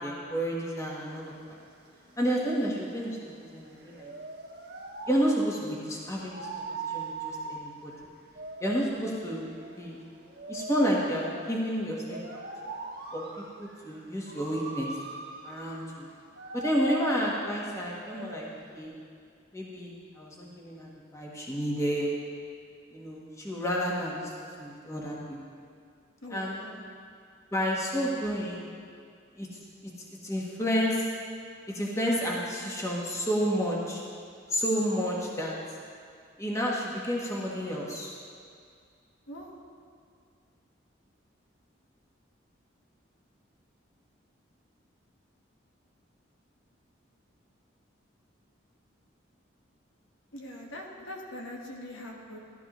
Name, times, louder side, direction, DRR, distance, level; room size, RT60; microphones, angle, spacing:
voice 1, 0.0-1.3 2.2-4.1 5.1-6.5 6.8-7.9 8.6-10.0 10.5-12.4 13.1-13.2 13.6-14.9 15.4-16.1 16.5-18.4 18.7-19.0 19.5-22.1 22.9-24.3 24.6-25.4 26.3-26.6 27.5-28.7 29.4-29.5 29.8-29.9 30.2-31.0 31.7-34.0 34.5-35.6 36.4-38.1, equal, 15° left, -3 dB, 1.2 m, -30 dB
sound 1, 0.8-18.9, right 3 dB, 60° right, 1.3 m, -42 dB
voice 2, 26.2-26.8 39.3-39.5 50.3-52.4, left 1 dB, 80° left, 0 dB, 1.4 m, -42 dB
13.5 x 11.5 x 3.0 m, 2.3 s
head